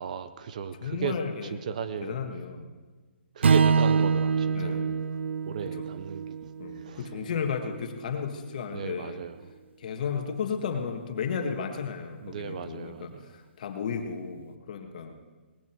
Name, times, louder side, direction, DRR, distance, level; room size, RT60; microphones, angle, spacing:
voice 1, 0.0-1.2 1.5-2.2 3.4-4.8 5.5-6.5 6.8-7.0 8.7-9.4 12.2-13.3, right 7 dB, 40° right, 13 dB, 0.7 m, -35 dB
voice 2, 0.8-1.6 2.0-2.7 4.5-5.0 5.6-5.9 6.6-9.2 9.8-15.1, left 6 dB, 40° left, 5 dB, 1.7 m, -34 dB
Strum, 3.4-7.8, right 5 dB, 80° right, 0.6 m, -26 dB
19.0 x 16.0 x 4.6 m, 1.3 s
hypercardioid pair, 170°, 6 cm